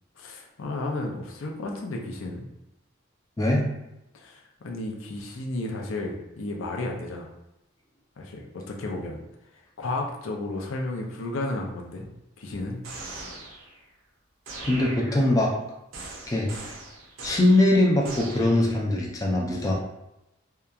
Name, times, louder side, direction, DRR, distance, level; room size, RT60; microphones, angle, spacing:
voice 1, 0.2-2.5 4.1-7.3 8.2-9.2 9.8-12.1 12.4-12.8, left 2 dB, 90° left, 0 dB, 0.5 m, -33 dB
voice 2, 3.4-3.7 14.6-15.5 16.3-16.7 17.2-19.7, left 1 dB, 20° left, -2 dB, 0.3 m, -22 dB
sound 1, 12.8-13.8 14.5-15.5 15.9-18.8, right 2 dB, 90° right, 0.6 m, -40 dB
2.8 x 2.2 x 2.3 m, 0.90 s
head